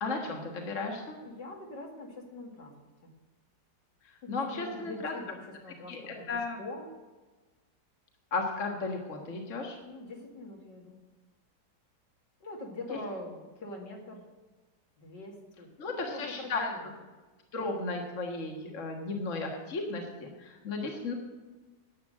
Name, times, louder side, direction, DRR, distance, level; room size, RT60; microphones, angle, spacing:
voice 1, 0.0-1.1 4.0-5.1 5.9-6.6 8.3-9.8 15.8-16.7 17.5-21.1, left 3 dB, 45° left, 1 dB, 1.8 m, -34 dB
voice 2, 1.2-2.8 3.0-3.1 4.2-6.9 9.8-11.0 12.4-14.3 15.0-16.9, left 2 dB, 70° left, 0 dB, 2.8 m, -43 dB
11.0 x 8.1 x 7.7 m, 1.3 s
omnidirectional pair, 2.0 m